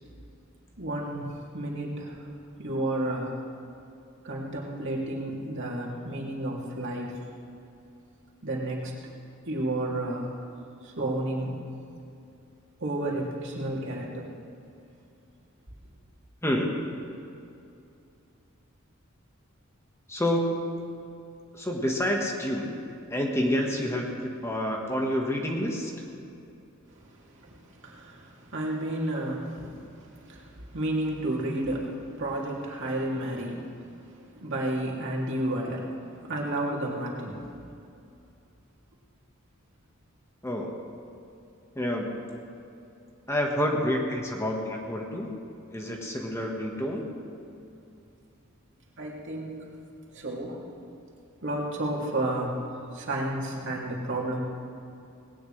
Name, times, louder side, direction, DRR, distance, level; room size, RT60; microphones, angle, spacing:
voice 1, 0.8-2.3 2.6-3.3 4.2-7.2 8.4-8.9 9.5-10.3 10.8-11.6 12.8-14.3 26.9-37.4 49.0-49.6 50.1-50.6 51.4-52.6 52.9-54.4, right 1 dB, 60° right, -3 dB, 2.8 m, -32 dB
voice 2, 16.4-16.7 20.1-20.7 21.6-22.7 23.1-25.9 40.4-40.8 41.7-42.2 43.3-45.3 45.7-47.0, equal, 15° left, 0 dB, 1.4 m, -28 dB
19.5 x 18.0 x 3.3 m, 2.6 s
head